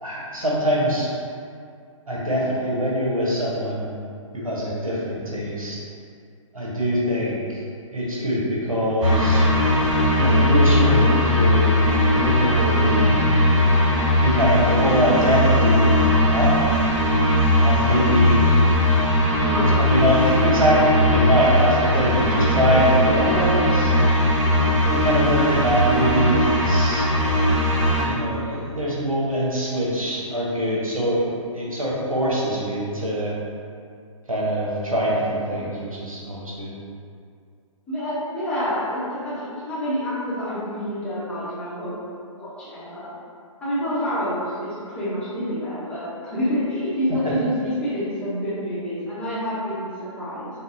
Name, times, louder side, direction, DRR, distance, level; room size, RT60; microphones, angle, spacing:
voice 1, 0.0-1.1 2.1-3.9 4.3-5.8 6.5-7.4 7.9-9.4 10.2-11.7 12.1-13.3 14.2-16.5 17.6-18.4 19.6-23.9 24.6-27.1 27.8-33.3 34.3-36.7, equal, 90° right, -6 dB, 0.9 m, -23 dB
sound 1, 9.0-28.0, left 1 dB, 60° right, 0.9 m, -19 dB
voice 2, 19.4-19.7 35.5-35.6 37.9-41.9 42.4-43.1 43.6-46.0 46.3-49.9 50.2-50.5, equal, 5° left, -13 dB, 0.7 m, -27 dB
3.9 x 2.1 x 2.4 m, 2.3 s
figure-of-eight pair, 130°, 17 cm